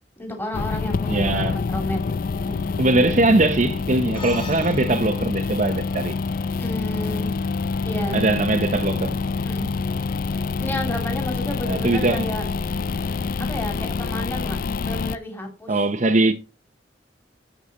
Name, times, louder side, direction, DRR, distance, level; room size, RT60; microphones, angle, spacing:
voice 1, 0.2-2.0 2.4-2.8 6.6-7.3 7.8-8.2 9.4-9.7 10.6-12.5 13.4-15.8, left 1 dB, 10° left, 2.8 m, -31 dB
sound 1, 0.5-15.2, left 4 dB, 50° left, 0.4 m, -26 dB
voice 2, 1.1-1.6 2.8-6.2 8.1-9.2 11.6-12.3 15.7-16.3, right 2 dB, 40° right, 0.8 m, -21 dB
sound 2, 4.1-8.8, left 2 dB, 30° left, 4.6 m, -44 dB
11.5 x 7.3 x 4.1 m
head